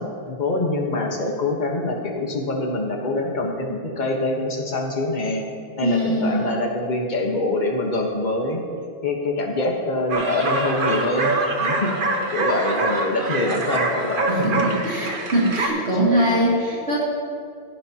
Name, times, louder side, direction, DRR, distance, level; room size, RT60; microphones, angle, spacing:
voice 1, 0.0-5.4 5.8-8.6 9.0-11.3 11.6-11.9 12.3-14.5, left 2 dB, 40° left, 1 dB, 1.4 m, -25 dB
voice 2, 5.8-6.5 12.0-12.1 14.3-17.0, equal, 75° right, -7 dB, 2.9 m, -22 dB
sound 1, 10.1-15.7, right 2 dB, 50° right, 1.2 m, -24 dB
16.0 x 10.5 x 2.9 m, 2.2 s
omnidirectional pair, 1.2 m